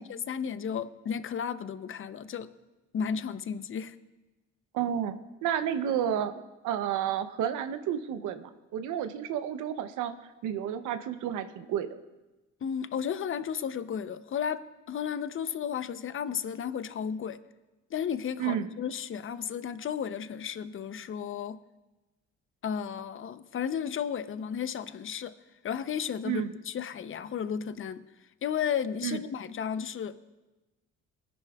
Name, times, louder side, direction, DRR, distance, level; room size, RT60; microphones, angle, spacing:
voice 1, 0.0-2.5 2.9-4.0 12.6-17.4 17.9-21.6 22.6-25.3 25.6-28.0 28.4-30.2, left 7 dB, 45° left, 13 dB, 0.6 m, -33 dB
voice 2, 4.7-10.1 10.4-12.0 18.4-18.7 26.2-26.5 29.0-29.2, right 9 dB, 90° right, 10 dB, 0.7 m, -31 dB
20.0 x 10.5 x 2.3 m, 1.1 s
cardioid pair, 90°, 30 cm